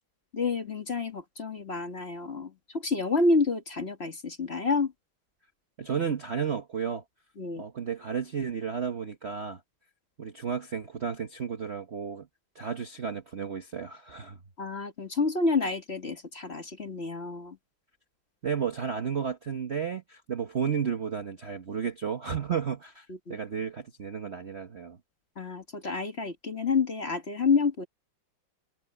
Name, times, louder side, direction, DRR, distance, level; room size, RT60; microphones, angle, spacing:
voice 1, 0.3-4.9 7.4-7.6 14.6-17.6 23.1-23.4 25.3-27.9, left 4 dB, 30° left, 1.7 m, -29 dB
voice 2, 5.8-7.0 7.6-9.6 10.2-12.3 12.5-14.4 18.4-25.0, right 7 dB, 40° right, 1.0 m, -32 dB
omnidirectional pair, 2.3 m